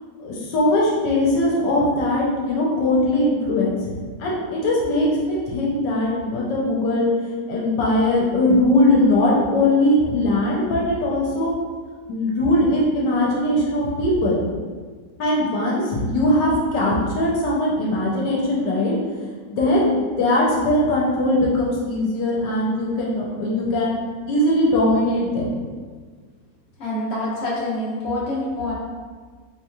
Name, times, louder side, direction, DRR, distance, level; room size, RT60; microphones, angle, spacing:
voice 1, 0.2-7.1 7.5-11.5 12.1-14.4 15.2-18.9 19.5-24.0 24.3-25.5, left 1 dB, 80° left, -4 dB, 1.4 m, -20 dB
voice 2, 26.8-28.7, left 1 dB, 45° left, -7 dB, 1.1 m, -26 dB
3.9 x 2.9 x 2.3 m, 1.5 s
omnidirectional pair, 1.9 m